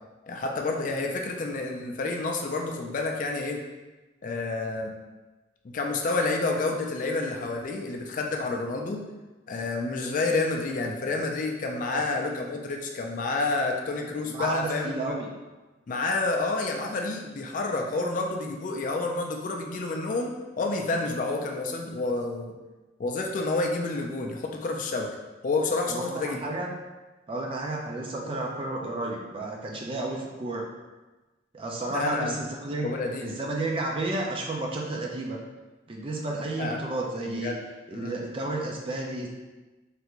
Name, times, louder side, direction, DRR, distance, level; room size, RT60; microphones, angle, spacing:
voice 1, 0.3-3.6 4.2-4.9 5.6-9.0 9.5-15.0 15.9-22.5 23.0-25.1 25.4-26.4 31.9-32.3 32.8-33.4 36.6-36.8 37.3-37.6 37.9-38.2, left 3 dB, 45° left, 2 dB, 0.3 m, -29 dB
voice 2, 14.2-15.3 25.9-26.7 27.3-30.7 31.5-32.9 33.2-35.4 35.9-37.5 37.9-39.3, right 2 dB, 30° right, -1 dB, 0.4 m, -32 dB
3.3 x 2.5 x 2.9 m, 1.2 s
head